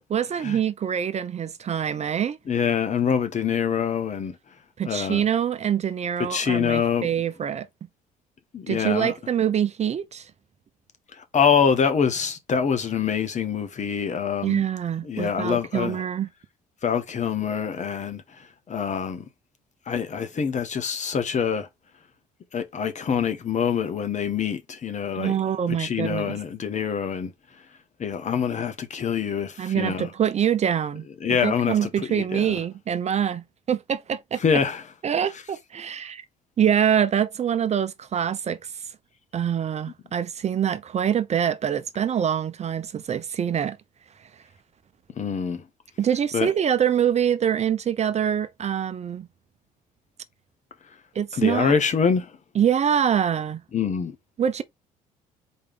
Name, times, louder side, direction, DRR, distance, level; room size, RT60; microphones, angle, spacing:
voice 1, 0.1-2.4 4.8-7.7 8.7-10.3 14.4-16.3 25.2-26.4 29.6-34.4 35.0-36.2 36.6-38.6 39.3-43.8 46.0-49.3 51.1-51.7 52.6-53.6 54.4-54.6, right 9 dB, 40° right, 0.6 m, -25 dB
voice 2, 2.5-4.4 4.8-5.2 6.3-7.1 8.5-9.1 11.2-14.6 15.0-16.0 16.8-19.2 19.9-21.7 22.5-25.3 25.7-27.3 28.0-30.1 31.2-32.6 34.4-34.8 45.2-45.6 46.3-46.5 51.3-52.3 53.7-54.1, left 7 dB, 45° left, 1.3 m, -25 dB
4.4 x 3.3 x 3.7 m
hypercardioid pair, 55°, 18 cm